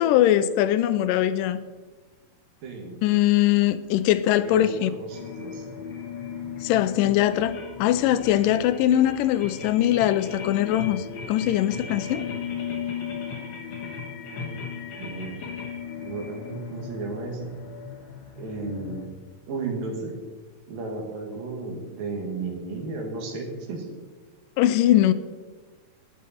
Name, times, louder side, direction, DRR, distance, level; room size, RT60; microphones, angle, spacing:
voice 1, 0.0-1.6 3.0-4.9 6.6-12.2 24.6-25.1, left 12 dB, 80° left, 13 dB, 2.1 m, -21 dB
voice 2, 2.6-3.0 4.4-5.7 14.2-15.3 16.0-17.5 18.4-19.1 19.5-20.2 20.7-23.9, right 3 dB, 75° right, 2 dB, 3.7 m, -34 dB
sound 1, 5.1-19.1, left 6 dB, 50° left, 2.0 m, -36 dB
18.5 x 8.6 x 4.3 m, 1.4 s
omnidirectional pair, 4.1 m